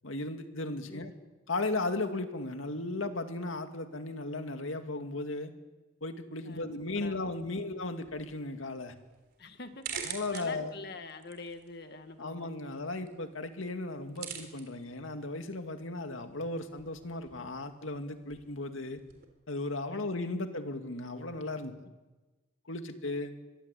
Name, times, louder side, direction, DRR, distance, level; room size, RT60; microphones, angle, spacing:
voice 1, 0.0-1.1 1.5-5.5 6.0-8.9 9.9-10.7 12.2-19.0 19.5-21.7 22.7-23.3, left 2 dB, 85° left, 6 dB, 2.3 m, -36 dB
sound 1, 8.0-19.2, right 8 dB, 50° right, 3.9 m, -48 dB
voice 2, 9.4-12.8 19.9-20.1 20.4-20.7, left 3 dB, 55° left, 7 dB, 2.0 m, -46 dB
24.5 x 22.5 x 8.5 m, 1.2 s
head